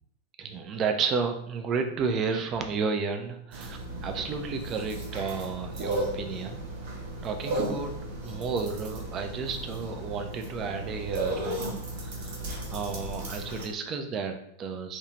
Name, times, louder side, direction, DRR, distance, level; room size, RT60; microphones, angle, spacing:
voice 1, 0.4-6.6 7.2-7.9 8.2-12.4 12.7-15.0, right 5 dB, 30° right, 5 dB, 0.3 m, -32 dB
sound 1, 3.5-13.6, right 1 dB, 55° right, 0.7 m, -35 dB
2.5 x 2.3 x 2.9 m, 0.73 s
figure-of-eight pair, 90°, 0 cm